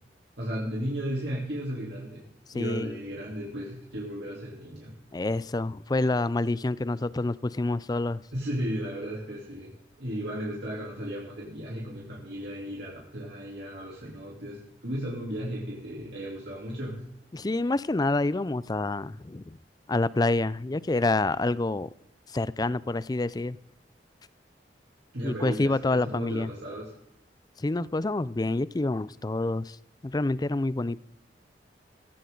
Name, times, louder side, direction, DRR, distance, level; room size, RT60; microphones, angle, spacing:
voice 1, 0.4-2.2 2.5-5.0 8.3-9.7 10.0-17.0 25.1-26.9, equal, 70° right, 3.3 m, -35 dB
voice 2, 2.5-3.0 5.1-8.2 17.3-19.6 19.9-21.9 22.3-23.6 25.2-26.5 27.6-29.8 30.0-31.0, left 2 dB, 20° left, 0.4 m, -27 dB
16.5 x 16.0 x 3.9 m
head